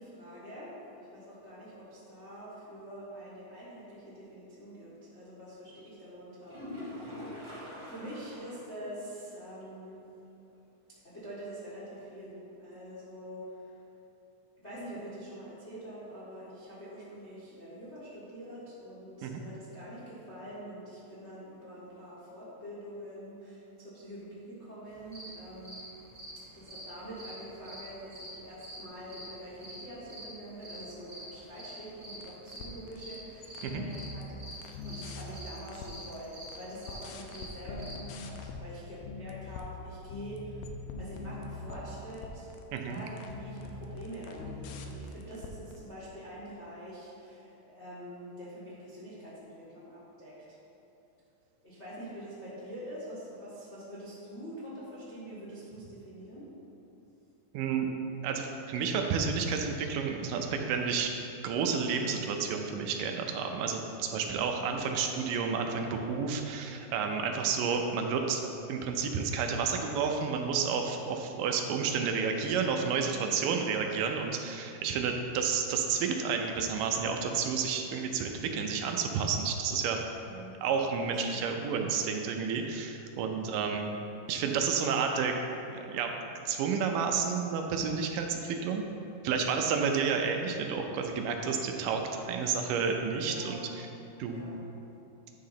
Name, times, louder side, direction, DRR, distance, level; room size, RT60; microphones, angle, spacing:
voice 1, 0.0-7.4 7.9-10.1 11.0-13.8 14.6-25.8 26.5-40.7 41.0-42.5 42.8-50.4 51.6-56.5 64.1-64.4 73.1-73.6 80.2-80.6 81.1-81.4 83.3-83.6 93.2-93.6 94.3-94.5, equal, 60° left, -9 dB, 0.7 m, -45 dB
sound 1, 6.4-8.7 9.0-9.1 9.6-9.7 13.4-13.5, left 1 dB, 30° right, 1.3 m, -43 dB
sound 2, 24.9-38.0, equal, 45° right, 0.7 m, -47 dB
sound 3, 32.2-33.2 33.4-36.2 36.5-38.6 39.0-39.7 40.1-45.8, left 3 dB, 80° left, 2.2 m, -42 dB
voice 2, 42.7-43.0 57.5-57.9 58.2-61.1 61.4-68.4 68.7-80.0 80.6-83.9 84.3-85.4 85.8-86.1 86.5-88.8 89.2-93.6 94.2-94.4, right 6 dB, 80° right, 3 dB, 2.1 m, -30 dB
9.3 x 3.8 x 5.7 m, 2.9 s
omnidirectional pair, 4.0 m